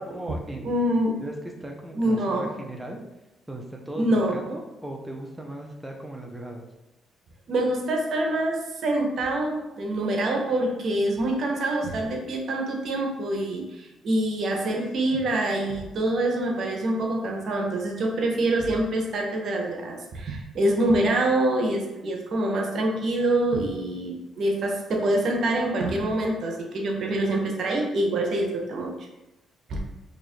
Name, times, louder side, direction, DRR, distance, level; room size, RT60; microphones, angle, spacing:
voice 1, 0.0-1.3 1.6-3.0 3.5-6.6, right 1 dB, 10° right, 0 dB, 0.5 m, -38 dB
voice 2, 0.6-1.2 1.9-2.5 4.0-4.4 7.5-29.1 29.7-29.8, right 1 dB, 60° right, 1 dB, 0.7 m, -25 dB
2.7 x 2.4 x 4.2 m, 0.99 s
cardioid pair, 90°, 0 cm